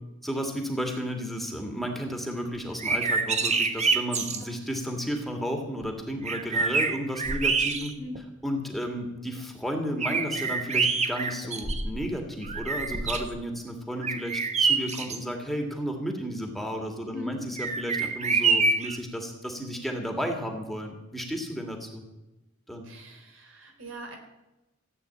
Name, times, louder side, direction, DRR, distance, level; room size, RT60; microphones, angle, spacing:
voice 1, 0.2-7.9 8.4-22.0 22.7-22.8, equal, ahead, 3 dB, 2.1 m, -33 dB
sound 1, 2.7-4.4 5.8-5.9 6.2-8.2 8.7-8.8 10.0-12.1 12.4-13.3 14.0-15.2 17.6-19.0, right 4 dB, 35° right, 1.2 m, -26 dB
voice 2, 17.1-17.6 22.8-24.2, left 1 dB, 75° right, 3 dB, 3.7 m, -40 dB
16.0 x 8.9 x 8.4 m, 1.0 s
head